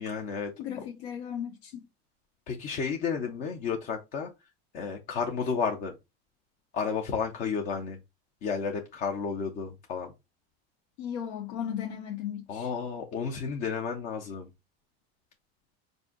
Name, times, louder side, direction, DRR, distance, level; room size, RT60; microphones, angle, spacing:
voice 1, 0.0-0.5 2.5-4.3 4.7-5.9 6.7-8.0 8.4-10.1 12.5-14.5, left 6 dB, 30° left, 0.4 m, -32 dB
voice 2, 0.6-1.8 11.0-12.7, left 9 dB, 85° left, 0.8 m, -36 dB
4.7 x 2.6 x 3.5 m
cardioid pair, 170°, 32 cm